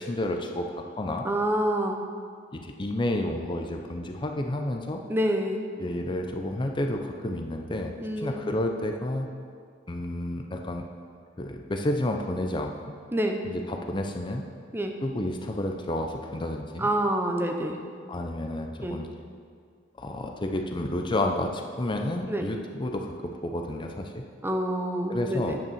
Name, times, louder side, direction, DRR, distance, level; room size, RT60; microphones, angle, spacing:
voice 1, 0.0-1.3 2.5-5.0 5.8-9.3 9.9-10.8 11.4-12.7 13.4-14.4 15.0-16.9 18.1-19.1 20.0-24.2 25.1-25.6, left 1 dB, 25° left, 3 dB, 0.5 m, -30 dB
voice 2, 1.2-2.0 5.1-5.7 8.0-8.5 13.1-13.4 14.7-14.9 16.8-17.8 18.8-19.0 22.3-22.5 24.4-25.6, right 1 dB, 10° right, 3 dB, 0.7 m, -27 dB
9.4 x 5.5 x 7.2 m, 2.1 s
head